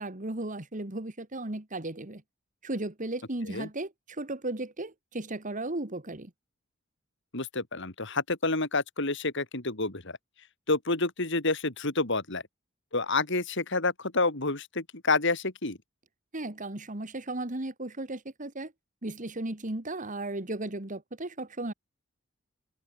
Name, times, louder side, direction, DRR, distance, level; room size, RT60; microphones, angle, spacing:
voice 1, 0.0-2.2 2.6-6.3 16.3-18.7 19.0-21.7, right 2 dB, 40° right, 2.0 m, -35 dB
voice 2, 7.3-10.1 10.7-12.4 12.9-15.8, left 3 dB, 65° left, 3.7 m, -29 dB
head